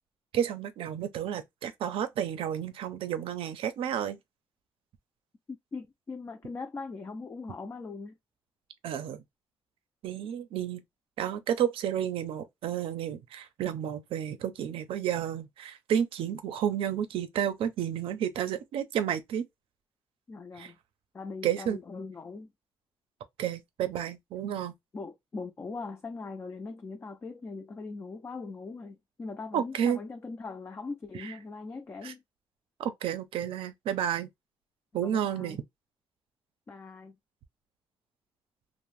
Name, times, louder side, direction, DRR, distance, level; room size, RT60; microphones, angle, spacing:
voice 1, 0.3-4.2 8.8-9.2 10.0-10.8 11.2-19.4 20.6-20.7 21.4-21.8 23.4-24.7 29.5-30.0 31.1-31.3 32.0-32.1 32.8-34.3 34.9-35.6, right 9 dB, 85° right, 0.5 m, -31 dB
voice 2, 5.7-8.2 20.3-20.8 21.1-22.5 24.9-32.2 35.0-35.6 36.7-37.1, left 4 dB, 25° left, 0.3 m, -40 dB
2.6 x 2.1 x 3.0 m
cardioid pair, 105°, 9 cm